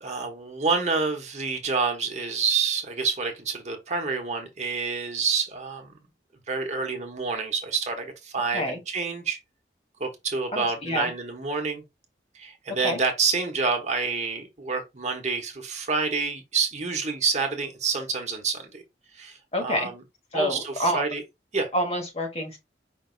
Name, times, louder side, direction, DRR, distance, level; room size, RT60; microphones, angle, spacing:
voice 1, 0.0-6.0 6.5-9.4 10.0-11.8 12.3-18.8 19.1-20.0 20.3-21.2 21.5-21.7, right 4 dB, 40° right, 1.1 m, -28 dB
voice 2, 10.5-11.1 12.8-13.0 19.5-19.9 20.3-21.0 21.7-22.6, left 1 dB, 35° left, 1.4 m, -27 dB
5.2 x 2.6 x 3.8 m
head